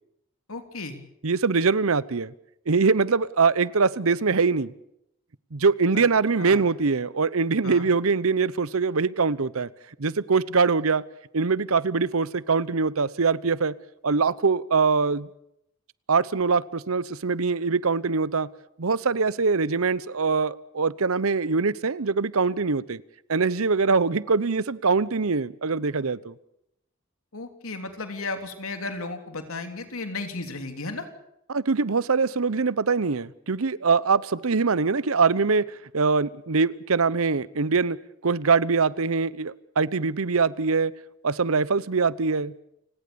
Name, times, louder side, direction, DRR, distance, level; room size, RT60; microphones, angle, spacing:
voice 1, 0.5-1.0 5.9-6.0 6.4-6.6 7.6-7.9 27.3-31.1, left 3 dB, 90° left, 6 dB, 3.3 m, -34 dB
voice 2, 1.2-2.3 2.7-4.7 5.5-9.7 10.0-11.0 11.3-13.7 14.0-15.3 16.1-18.5 18.8-23.0 23.3-26.3 31.5-38.0 38.2-40.9 41.2-42.5, right 4 dB, 90° right, 19 dB, 0.8 m, -23 dB
29.5 x 18.0 x 7.0 m, 0.79 s
head